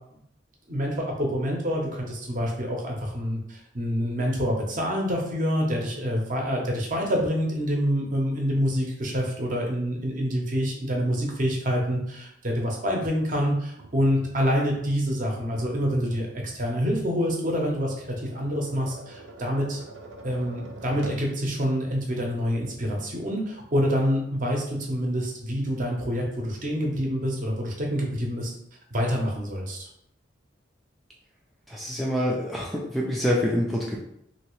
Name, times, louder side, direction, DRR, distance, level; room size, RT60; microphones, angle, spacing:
voice 1, 0.7-16.3 16.5-17.9 18.3-19.8 20.2-28.5 28.9-29.9, equal, 40° right, 0 dB, 0.7 m, -27 dB
Tap, 13.8-21.3, right 2 dB, 75° right, 0.5 m, -44 dB
voice 2, 31.7-34.0, equal, ahead, -4 dB, 0.3 m, -26 dB
3.1 x 2.8 x 3.0 m, 0.76 s
head